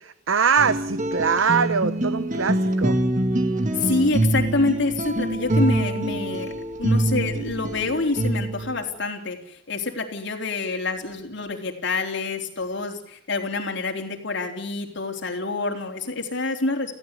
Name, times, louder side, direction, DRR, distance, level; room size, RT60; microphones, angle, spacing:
voice 1, 0.3-3.0, right 6 dB, 80° right, 13 dB, 0.9 m, -22 dB
sound 1, 0.6-8.8, right 1 dB, 40° right, 2.2 m, -25 dB
voice 2, 3.8-6.5 6.8-9.4 9.7-16.9, left 3 dB, 60° left, 3 dB, 3.8 m, -27 dB
28.0 x 16.5 x 8.3 m, 0.68 s
head